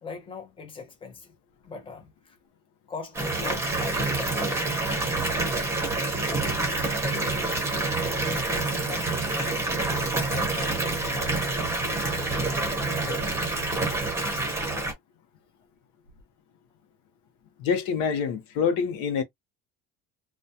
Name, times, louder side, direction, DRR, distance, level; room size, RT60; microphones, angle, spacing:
voice 1, 0.0-1.3 1.6-2.4 2.9-5.4 7.0-7.5 7.7-11.4 12.1-13.6, left 5 dB, 15° left, 0.8 m, -41 dB
Water tap faucet / Bathtub (filling or washing) / Fill (with liquid), 3.1-14.9, right 2 dB, 10° right, 1.1 m, -27 dB
voice 2, 17.6-19.2, left 6 dB, 80° left, 0.8 m, -26 dB
2.3 x 2.1 x 2.8 m
cardioid pair, 135°, 30 cm